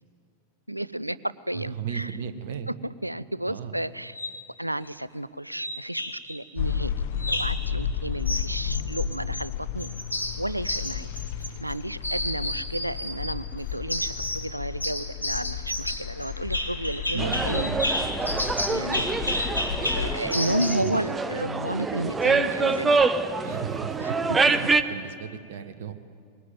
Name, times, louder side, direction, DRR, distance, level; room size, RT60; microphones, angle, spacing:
voice 1, 0.7-2.2 2.7-4.2 4.6-6.9 7.2-9.9 10.4-11.1 11.6-17.7 18.7-19.1 19.9-23.1 24.0-24.1 24.4-24.7, right 1 dB, 85° right, 18 dB, 0.5 m, -32 dB
voice 2, 1.5-2.7 3.5-3.8 17.1-17.4 17.7-17.8 20.8-21.1 23.4-24.2 24.5-25.9, right 8 dB, 55° right, 10 dB, 1.2 m, -35 dB
sound 1, 4.0-4.4 5.6-6.4 7.2-7.6 8.3-9.5 9.8-11.7 12.0-13.4 13.9-14.5 14.8-20.9, left 1 dB, 85° left, 1.5 m, -31 dB
sound 2, 6.6-20.2, left 8 dB, 50° left, 1.0 m, -33 dB
sound 3, 17.2-24.8, right 4 dB, 15° right, 0.9 m, -26 dB
20.5 x 18.0 x 9.2 m, 2.3 s
figure-of-eight pair, 90°, 0 cm